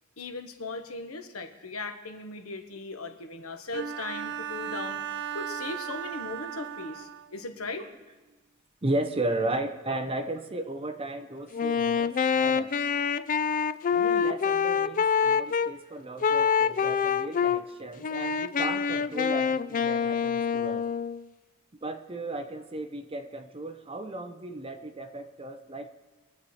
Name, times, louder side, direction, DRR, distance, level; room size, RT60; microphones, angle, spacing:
voice 1, 0.2-5.0 5.3-7.9, left 3 dB, 80° left, 7 dB, 1.2 m, -38 dB
Bowed string instrument, 3.7-7.4, right 8 dB, 55° right, 0.5 m, -36 dB
voice 2, 8.8-12.7 13.9-20.8 21.8-25.9, right 2 dB, 25° right, 7 dB, 0.8 m, -35 dB
Wind instrument woodwind instrument, 11.5-15.7 16.2-17.6 18.0-21.2, left 6 dB, 40° left, 0.4 m, -26 dB
23.0 x 7.9 x 4.3 m, 1.2 s
head